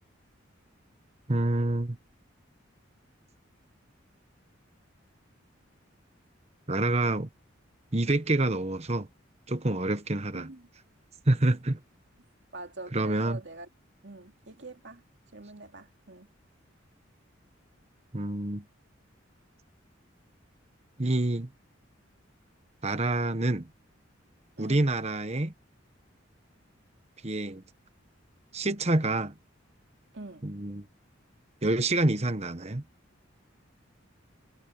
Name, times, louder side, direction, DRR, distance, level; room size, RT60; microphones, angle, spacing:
voice 1, 1.3-2.0 6.7-7.3 7.9-9.1 9.5-10.5 11.3-11.8 12.9-13.4 18.1-18.6 21.0-21.5 22.8-23.7 24.6-25.5 27.2-27.6 28.5-29.3 30.4-30.8 31.6-32.8, right 2 dB, 35° right, 1.2 m, -27 dB
voice 2, 10.3-10.7 12.5-13.7 14.0-15.0 15.3-16.3 24.6-24.9 30.1-30.4, right 2 dB, 65° right, 2.7 m, -44 dB
head